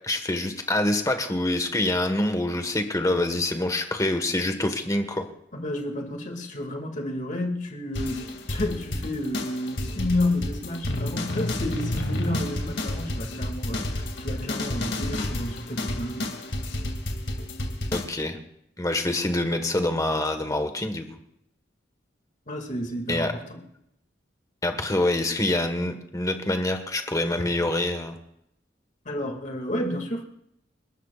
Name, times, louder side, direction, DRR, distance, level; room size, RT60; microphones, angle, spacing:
voice 1, 0.0-5.3 17.9-18.4 18.8-21.1 23.1-23.3 24.6-28.2, left 1 dB, 20° left, 6 dB, 1.5 m, -26 dB
voice 2, 5.5-13.9 14.2-16.3 22.5-23.6 29.1-30.2, left 1 dB, 45° left, 2 dB, 2.4 m, -31 dB
sound 1, 7.9-18.0, left 1 dB, 80° left, 2.5 m, -30 dB
29.5 x 12.5 x 2.5 m, 0.77 s
head